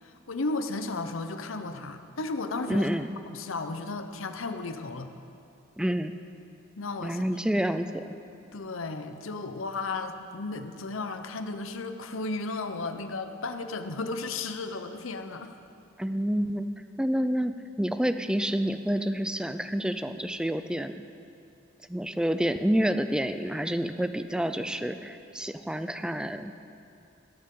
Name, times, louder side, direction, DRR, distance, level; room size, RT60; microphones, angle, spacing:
voice 1, 0.0-2.9 3.3-5.1 6.8-7.2 8.5-15.6, left 3 dB, 85° left, 8 dB, 0.8 m, -34 dB
voice 2, 2.7-3.1 5.8-6.1 7.0-8.0 16.0-16.7 17.0-20.9 21.9-26.5, equal, 5° right, 10 dB, 0.4 m, -28 dB
16.5 x 13.0 x 3.8 m, 2.6 s
head